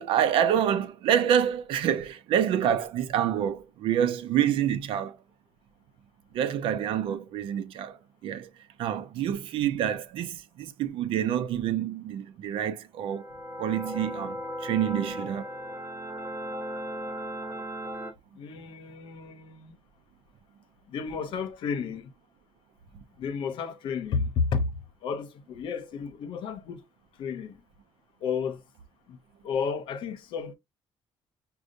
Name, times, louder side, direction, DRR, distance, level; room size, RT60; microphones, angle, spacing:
voice 1, 0.0-5.2 6.3-8.5 8.8-13.3 13.6-15.5, right 9 dB, 85° right, 0.6 m, -27 dB
sound 1, 13.1-18.1, equal, 20° right, 1.1 m, -36 dB
voice 2, 18.3-19.8 20.9-22.1 23.2-24.7 25.0-26.8 27.2-27.6 28.2-28.6 29.1-29.2 29.4-30.5, left 5 dB, 65° left, 0.8 m, -32 dB
6.3 x 2.3 x 2.6 m
cardioid pair, 180°, 9 cm